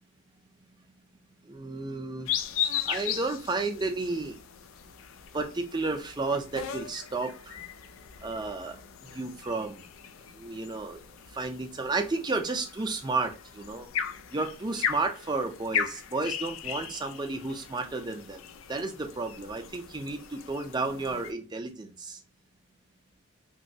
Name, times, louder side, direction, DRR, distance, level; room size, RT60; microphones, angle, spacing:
voice 1, 1.5-2.3 2.9-4.4 5.3-7.5 8.2-8.8 9.1-9.8 10.4-11.0 11.3-13.9 14.3-18.4 18.7-22.2, right 3 dB, 20° right, 5 dB, 0.4 m, -32 dB
Fryers Forest Dawn long version, 2.3-21.3, left 8 dB, 75° left, 0.4 m, -37 dB
3.1 x 2.6 x 2.6 m, 0.35 s
head